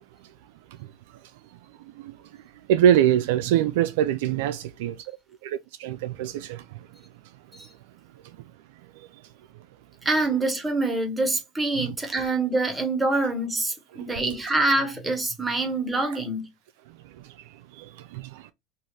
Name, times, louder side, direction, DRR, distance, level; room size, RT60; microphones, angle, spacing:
voice 1, 2.7-5.0 5.4-6.6 11.8-11.9 17.8-18.5, right 10 dB, 75° right, 0.3 m, -23 dB
voice 2, 10.0-16.5, right 2 dB, 15° right, 1.2 m, -25 dB
2.7 x 2.5 x 3.1 m
hypercardioid pair, 95°, 0 cm